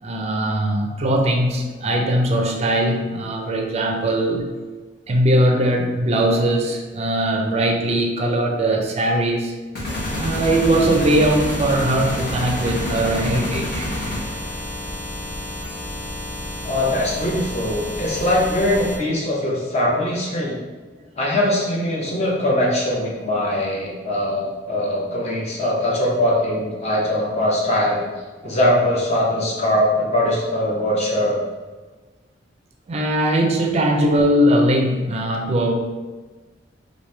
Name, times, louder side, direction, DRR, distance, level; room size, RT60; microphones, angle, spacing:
voice 1, 0.0-4.6 5.1-9.5 10.2-13.9 28.4-28.5 32.9-35.7, right 1 dB, 35° right, 2 dB, 0.4 m, -20 dB
sound 1, 9.8-19.0, left 1 dB, 80° left, 1.2 m, -31 dB
sound 2, 9.8-14.6, left 1 dB, 55° left, 1.0 m, -28 dB
voice 2, 16.6-20.6 21.2-28.0 28.4-31.4, left 1 dB, 35° left, -4 dB, 0.8 m, -21 dB
3.0 x 2.6 x 3.3 m, 1.3 s
head